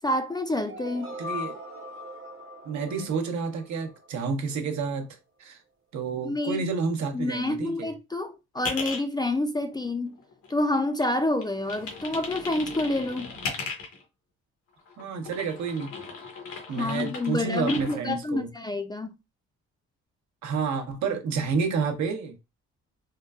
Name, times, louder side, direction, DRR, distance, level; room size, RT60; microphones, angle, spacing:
voice 1, 0.0-1.1 6.2-6.6 7.1-10.2 10.5-13.3 16.8-19.1, left 2 dB, 15° left, 0.3 m, -28 dB
sound 1, 0.6-4.6, left 2 dB, 45° right, 1.0 m, -40 dB
voice 2, 1.2-1.6 2.6-5.1 5.4-5.6 5.9-7.9 15.0-15.9 16.7-18.5 20.4-22.3, right 5 dB, 70° right, 0.8 m, -29 dB
sound 2, 8.6-9.0 9.6-10.7 11.0-14.0 14.8-18.0, left 4 dB, 90° left, 1.1 m, -37 dB
3.8 x 2.3 x 2.2 m
cardioid pair, 90°, 30 cm